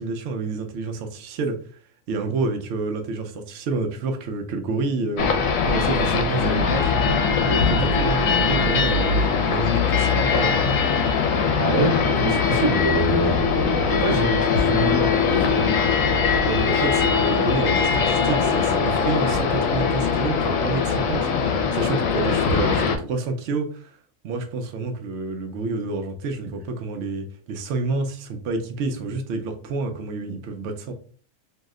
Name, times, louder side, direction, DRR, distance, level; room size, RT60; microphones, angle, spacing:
voice 1, 0.0-1.6 2.1-6.9 7.4-9.1 9.4-10.6 16.5-24.0 24.2-30.9, right 3 dB, 65° right, 4 dB, 0.8 m, -28 dB
sound 1, 5.2-23.0, left 5 dB, 80° left, 1.0 m, -21 dB
voice 2, 11.6-15.8, right 3 dB, 85° right, 3 dB, 1.2 m, -26 dB
2.7 x 2.0 x 3.5 m, 0.43 s
omnidirectional pair, 1.4 m